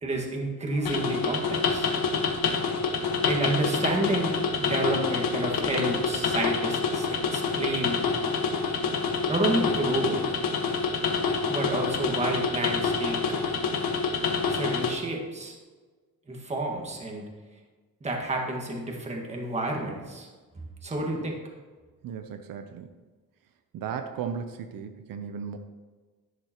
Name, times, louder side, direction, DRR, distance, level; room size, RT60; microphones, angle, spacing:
voice 1, 0.0-1.9 3.2-8.0 9.3-10.2 11.5-13.2 14.5-15.5 16.3-17.2 18.0-20.3 20.8-21.4, right 2 dB, 20° right, 0 dB, 1.7 m, -30 dB
sound 1, 0.9-14.9, left 5 dB, 80° left, 1.5 m, -27 dB
voice 2, 22.0-22.9 23.7-25.6, right 7 dB, 75° right, 7 dB, 0.8 m, -35 dB
11.0 x 11.0 x 3.0 m, 1.4 s
cardioid pair, 165°, 34 cm